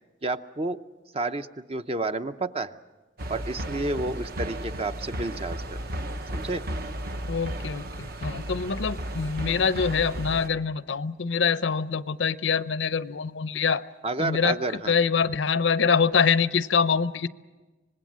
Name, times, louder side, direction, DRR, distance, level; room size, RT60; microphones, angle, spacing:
voice 1, 0.2-0.8 1.1-2.8 3.3-5.8 6.3-6.6 14.0-14.9, right 2 dB, 30° right, 9 dB, 0.7 m, -30 dB
sound 1, 3.2-10.5, right 1 dB, 50° right, 1.1 m, -34 dB
voice 2, 7.3-13.8 14.2-14.6 14.9-17.3, left 6 dB, 75° left, 15 dB, 0.6 m, -25 dB
25.5 x 20.5 x 7.5 m, 1.2 s
head